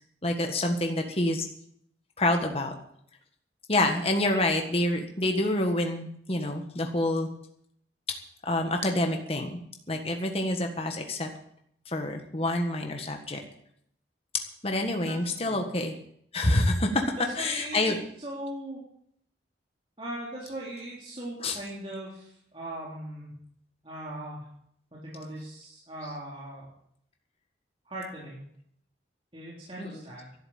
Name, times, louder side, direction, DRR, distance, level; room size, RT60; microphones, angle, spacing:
voice 1, 0.2-1.4 2.2-2.7 3.7-7.3 8.4-9.5 9.9-11.3 11.9-13.4 14.6-15.9 16.3-17.0 17.4-18.0 21.4-21.6 29.8-30.0, left 1 dB, 35° left, 4 dB, 1.6 m, -27 dB
voice 2, 15.0-15.6 17.1-18.8 20.0-23.3 23.8-24.5 24.9-26.7 27.9-28.4 29.3-30.3, right 1 dB, 30° right, -6 dB, 3.8 m, -39 dB
12.0 x 11.0 x 8.9 m, 0.69 s
head